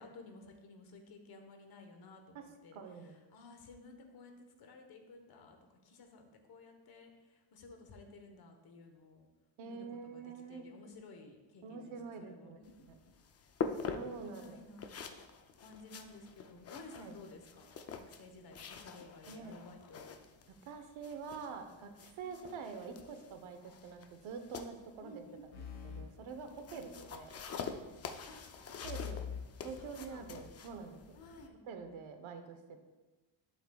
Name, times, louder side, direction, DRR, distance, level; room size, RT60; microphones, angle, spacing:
voice 1, 0.0-2.8 3.1-4.3 4.6-5.6 5.8-9.3 9.6-12.8 14.2-15.0 15.6-20.1 22.2-22.5 25.0-25.7 26.7-26.9 28.3-28.4 29.8-30.3 31.2-31.6, left 3 dB, 50° left, 4 dB, 1.2 m, -55 dB
voice 2, 2.3-3.2 9.6-10.7 11.6-13.0 13.9-14.6 16.9-17.1 19.3-19.5 20.7-27.3 28.8-29.2 29.6-31.2 31.7-32.8, right 5 dB, 70° right, 6 dB, 1.1 m, -46 dB
sound 1, 12.6-31.5, left 5 dB, 35° left, 0.4 m, -46 dB
sound 2, 25.5-27.1 28.8-30.6, left 7 dB, 85° left, 2.1 m, -46 dB
11.5 x 7.9 x 2.3 m, 1.2 s
cardioid pair, 180°, 49 cm